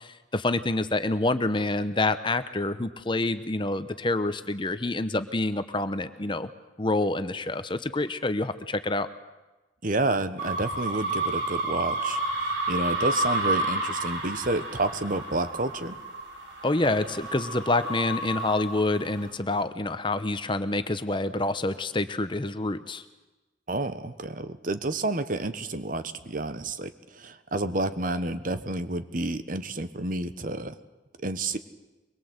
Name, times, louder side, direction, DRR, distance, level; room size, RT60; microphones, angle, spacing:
voice 1, 0.0-6.5 6.8-9.1 16.6-23.0, left 2 dB, 25° left, 11 dB, 0.9 m, -27 dB
voice 2, 9.8-16.0 23.7-30.7 31.2-31.6, right 2 dB, 45° right, 12 dB, 1.2 m, -30 dB
sound 1, 10.4-19.3, right 2 dB, 80° right, 5.6 m, -31 dB
24.0 x 22.0 x 8.1 m, 1.1 s
head